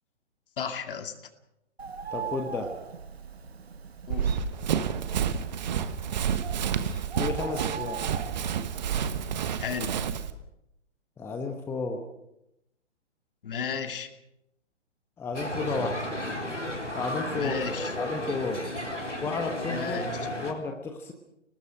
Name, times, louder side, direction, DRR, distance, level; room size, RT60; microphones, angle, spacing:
voice 1, 0.6-1.1 4.1-4.4 9.6-9.9 13.4-14.1 15.5-15.6 17.3-17.9 19.7-20.1, left 6 dB, 50° left, 7 dB, 2.4 m, -34 dB
Bird, 1.8-8.9, right 6 dB, 60° right, 1.5 m, -40 dB
voice 2, 2.1-2.7 5.3-5.4 7.2-8.0 11.2-12.0 15.2-16.1 16.9-18.6 19.2-20.1 20.4-21.1, left 4 dB, 5° left, 4 dB, 1.0 m, -32 dB
Run, 4.1-10.3, right 8 dB, 40° right, 1.3 m, -29 dB
sound 1, 15.3-20.5, left 1 dB, 85° left, 4.1 m, -33 dB
29.5 x 19.5 x 5.0 m, 0.84 s
figure-of-eight pair, 130°, 35 cm